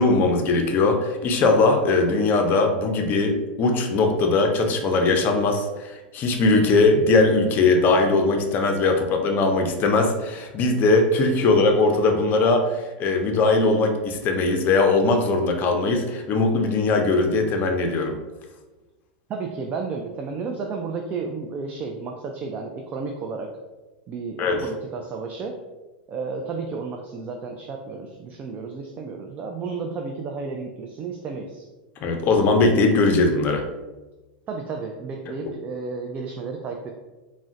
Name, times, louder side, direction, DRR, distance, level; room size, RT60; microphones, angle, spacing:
voice 1, 0.0-18.2 24.4-24.6 32.0-33.6, left 3 dB, 35° left, 3 dB, 0.5 m, -20 dB
voice 2, 19.3-23.5 24.1-25.5 26.1-31.7 34.5-36.9, right 4 dB, 30° right, 2 dB, 0.3 m, -32 dB
3.6 x 2.1 x 2.5 m, 1.1 s
hypercardioid pair, 110°, 5 cm